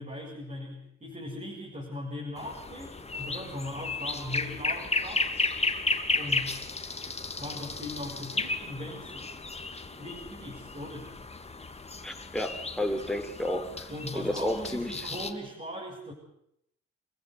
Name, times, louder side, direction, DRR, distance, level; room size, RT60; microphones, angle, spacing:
voice 1, 0.0-5.4 6.2-6.7 7.4-9.4 9.9-11.1 13.9-16.1, left 1 dB, 25° right, -3 dB, 7.8 m, -39 dB
sound 1, 2.4-15.3, left 3 dB, 20° left, 2.6 m, -34 dB
voice 2, 12.0-13.9 14.1-14.9, left 1 dB, ahead, 4 dB, 4.3 m, -31 dB
28.5 x 14.5 x 9.5 m, 0.75 s
cardioid pair, 90°, 30 cm